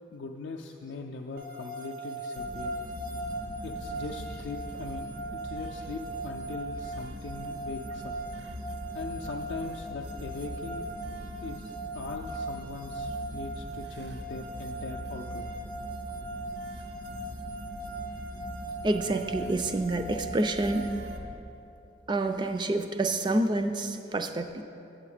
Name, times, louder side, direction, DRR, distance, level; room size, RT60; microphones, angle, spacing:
voice 1, 0.1-2.7 3.6-8.1 8.9-10.9 11.4-15.4, left 3 dB, 65° left, 0 dB, 0.4 m, -40 dB
sound 1, 1.4-21.2, right 2 dB, 65° right, 0.6 m, -39 dB
sound 2, 2.3-21.4, left 1 dB, 85° right, 1.4 m, -42 dB
voice 2, 18.8-20.9 22.1-24.6, right 2 dB, 25° right, 7 dB, 0.3 m, -28 dB
8.3 x 7.7 x 4.9 m, 2.8 s
head